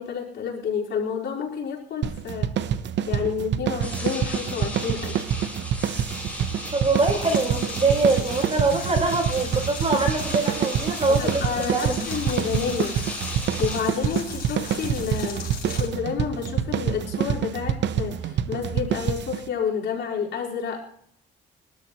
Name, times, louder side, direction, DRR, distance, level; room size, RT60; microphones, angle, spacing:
voice 1, 0.0-2.5 3.1-5.2 11.1-13.0 13.6-15.5 15.8-20.8, left 7 dB, 65° left, -4 dB, 4.2 m, -29 dB
sound 1, 2.0-19.5, right 9 dB, 65° right, 0.8 m, -27 dB
sound 2, 3.8-13.8, left 1 dB, 5° left, 6.6 m, -36 dB
voice 2, 6.7-12.1, right 3 dB, 30° right, 2 dB, 4.0 m, -24 dB
sound 3, 6.9-15.9, left 6 dB, 45° left, 5.1 m, -39 dB
22.5 x 13.0 x 2.9 m, 0.66 s
cardioid pair, 90°, 20 cm